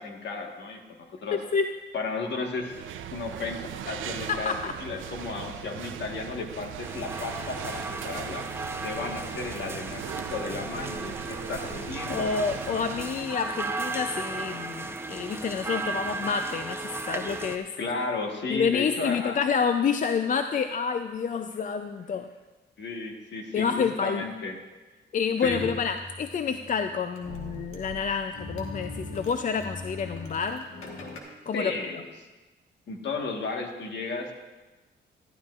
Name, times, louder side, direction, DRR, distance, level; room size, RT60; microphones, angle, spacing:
voice 1, 0.0-1.4 1.9-2.8 3.1-8.4 8.8-12.3 17.8-19.4 22.8-24.6 25.4-25.7 31.5-32.0 32.9-34.3, left 3 dB, 65° left, 2 dB, 1.5 m, -34 dB
voice 2, 1.3-1.7 4.3-4.7 11.7-11.8 12.1-17.8 18.5-22.3 23.5-24.3 25.1-30.7 31.5-31.7, left 6 dB, 40° left, 8 dB, 0.4 m, -28 dB
sound 1, 2.6-13.3, right 9 dB, 85° right, 0.5 m, -39 dB
sound 2, 6.8-17.6, right 3 dB, 10° right, 0.8 m, -35 dB
sound 3, 25.4-31.2, left 2 dB, 90° left, 1.5 m, -41 dB
13.0 x 11.5 x 2.5 m, 1.2 s
cardioid pair, 85°, 20 cm